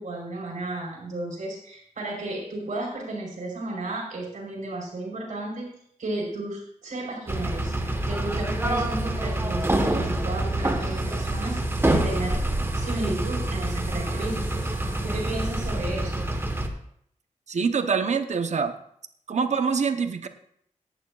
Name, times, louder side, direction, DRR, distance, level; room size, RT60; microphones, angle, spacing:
voice 1, 0.0-5.7 6.0-11.6 11.9-12.4 12.7-16.2, right 2 dB, 90° right, -2 dB, 4.8 m, -33 dB
sound 1, 7.3-16.7, right 1 dB, 20° right, 1.2 m, -26 dB
voice 2, 17.5-18.7 19.3-20.3, right 5 dB, 65° right, 8 dB, 0.9 m, -25 dB
17.5 x 11.5 x 2.4 m, 0.68 s
wide cardioid pair, 135°, 13 cm